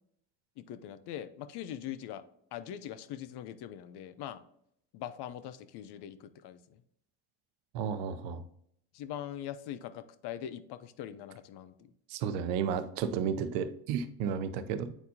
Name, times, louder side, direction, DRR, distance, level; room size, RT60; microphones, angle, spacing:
voice 1, 0.6-2.2 2.5-4.4 4.9-6.8 8.9-11.9, left 10 dB, 65° left, 13 dB, 0.7 m, -42 dB
voice 2, 7.7-8.4 12.1-14.9, right 7 dB, 80° right, 11 dB, 0.7 m, -32 dB
8.9 x 4.3 x 2.7 m, 0.71 s
supercardioid pair, 90°, 43 cm